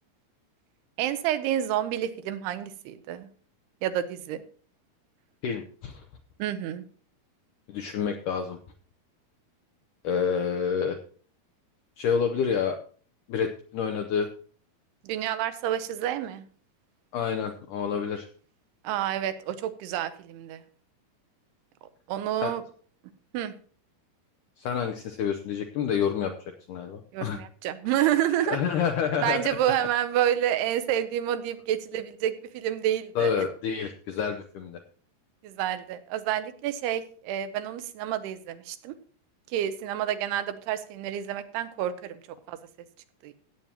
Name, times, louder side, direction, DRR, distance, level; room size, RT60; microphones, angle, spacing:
voice 1, 1.0-3.3 3.8-4.4 6.4-6.8 15.0-16.4 18.8-20.6 22.1-22.6 23.3-23.5 27.1-28.6 29.2-33.3 35.4-39.0 39.5-42.2 42.5-42.6 43.2-43.3, right 11 dB, 85° right, 11 dB, 2.8 m, -29 dB
voice 2, 5.4-6.0 7.7-8.6 10.0-11.0 12.0-12.8 13.3-14.3 17.1-18.3 22.4-22.5 24.6-26.3 26.7-27.4 28.5-29.4 33.2-34.8, left 7 dB, 85° left, 5 dB, 1.8 m, -28 dB
16.0 x 8.8 x 2.9 m, 0.43 s
omnidirectional pair, 4.6 m